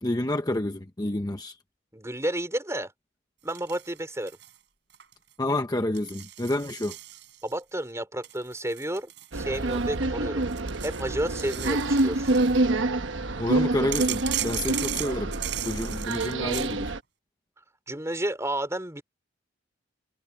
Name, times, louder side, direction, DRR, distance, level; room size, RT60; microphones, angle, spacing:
voice 1, 0.0-1.6 5.4-6.9 13.4-15.3 15.6-16.9, left 1 dB, 20° left, 0.8 m, -29 dB
voice 2, 1.9-2.9 3.4-4.4 7.4-10.4 10.8-12.3 17.9-19.0, right 1 dB, 15° right, 4.2 m, -31 dB
sound 1, 3.5-4.6 4.9-5.3 5.9-7.6 8.2-10.0 10.4-12.6 13.9-16.7, right 13 dB, 65° right, 6.2 m, -37 dB
sound 2, 9.3-17.0, right 2 dB, 80° right, 1.1 m, -27 dB
head